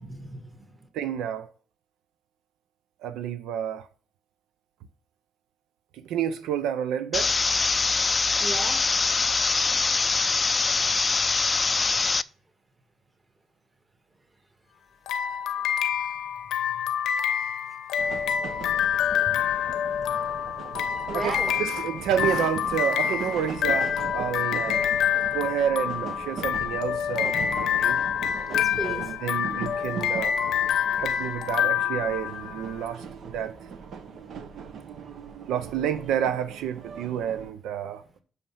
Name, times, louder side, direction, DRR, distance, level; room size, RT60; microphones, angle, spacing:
voice 1, 0.0-0.7 8.4-8.8 10.8-11.2 19.3-19.4 20.1-20.3 21.0-21.5 28.5-29.2 34.0-34.2, right 2 dB, 20° right, 1.9 m, -36 dB
voice 2, 0.9-1.5 3.0-3.9 5.9-7.4 21.1-24.8 25.3-28.0 28.8-30.4 30.9-33.5 35.5-38.0, right 9 dB, 90° right, 0.5 m, -29 dB
sound 1, 7.1-12.2, left 4 dB, 30° left, 0.3 m, -23 dB
sound 2, 15.1-32.7, left 9 dB, 85° left, 0.7 m, -27 dB
sound 3, 18.0-37.5, right 5 dB, 70° right, 1.0 m, -40 dB
5.9 x 5.4 x 5.6 m
cardioid pair, 90°, 0 cm